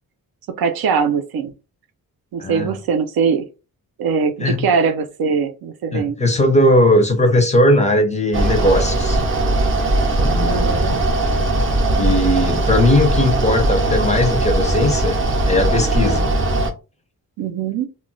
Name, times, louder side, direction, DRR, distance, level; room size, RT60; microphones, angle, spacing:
voice 1, 0.6-1.5 2.3-3.5 4.0-6.2 10.4-11.0 17.4-17.9, right 6 dB, 85° right, 0.6 m, -21 dB
voice 2, 5.9-9.2 10.2-10.8 12.0-15.2 15.5-16.3, left 1 dB, 20° left, 0.4 m, -18 dB
Mechanical fan, 8.3-16.7, right 2 dB, 35° right, 0.5 m, -19 dB
2.2 x 2.1 x 3.7 m
wide cardioid pair, 175°, 36 cm